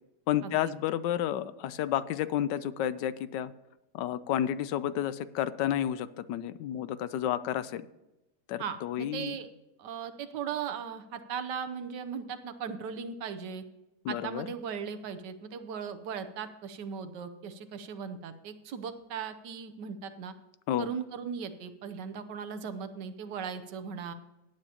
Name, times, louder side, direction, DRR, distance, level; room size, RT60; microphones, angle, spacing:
voice 1, 0.3-3.5 3.9-7.9 8.5-9.4 14.0-14.5 20.7-20.9, left 11 dB, 80° left, 15 dB, 1.2 m, -31 dB
voice 2, 8.6-9.5 9.8-13.6 14.1-20.3 20.8-24.1, right 7 dB, 75° right, 9 dB, 1.4 m, -38 dB
16.5 x 9.2 x 2.9 m, 0.96 s
omnidirectional pair, 1.9 m